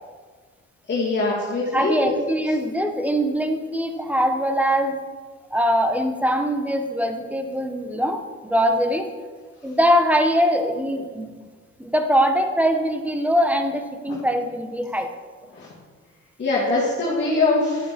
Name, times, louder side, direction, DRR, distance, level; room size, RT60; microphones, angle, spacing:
voice 1, 0.9-2.1 14.1-14.2 15.5-15.7 16.4-17.9, left 3 dB, 35° left, -7 dB, 2.6 m, -22 dB
voice 2, 1.7-5.0 5.5-9.1 9.6-11.3 11.8-15.1, equal, 5° right, 6 dB, 1.2 m, -22 dB
11.5 x 8.3 x 4.3 m, 1.5 s
cardioid pair, 90°, 30 cm